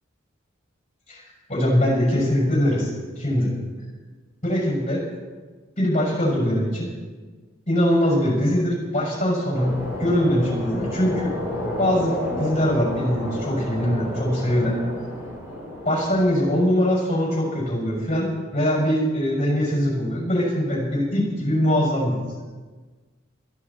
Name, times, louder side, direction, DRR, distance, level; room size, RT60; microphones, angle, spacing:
voice 1, 1.1-3.5 4.4-5.0 5.8-6.9 7.7-11.3 11.8-14.8 15.8-22.2, equal, 35° left, -2 dB, 6.3 m, -22 dB
sound 1, 9.5-16.6, left 1 dB, 15° right, 6.1 m, -31 dB
22.0 x 13.0 x 4.3 m, 1.4 s
head